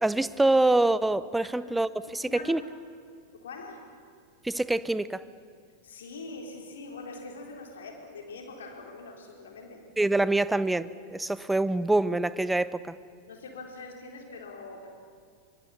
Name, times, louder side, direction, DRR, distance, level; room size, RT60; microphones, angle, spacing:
voice 1, 0.0-2.6 4.4-5.2 10.0-13.0, right 2 dB, 5° right, 16 dB, 0.7 m, -25 dB
voice 2, 1.4-1.7 2.2-2.6 3.3-3.9 5.8-9.8 13.3-14.9, left 3 dB, 65° left, 2 dB, 4.1 m, -43 dB
24.5 x 24.5 x 7.1 m, 2.2 s
figure-of-eight pair, 90°, 0 cm